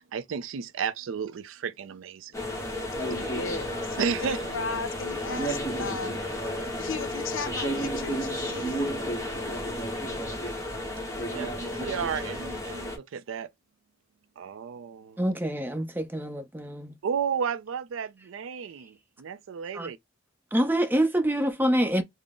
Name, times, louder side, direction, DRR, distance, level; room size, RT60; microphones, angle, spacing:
voice 1, 0.0-2.3 4.0-4.4 11.3-13.5 14.4-15.2 17.0-20.0, right 7 dB, 80° right, 0.4 m, -33 dB
sound 1, 2.3-13.0, equal, 15° left, 1.0 m, -32 dB
voice 2, 3.1-6.2 6.8-8.8, left 4 dB, 80° left, 0.6 m, -36 dB
voice 3, 15.2-16.9 19.7-19.9 20.5-22.0, right 1 dB, 10° right, 0.6 m, -26 dB
3.8 x 2.0 x 3.6 m
head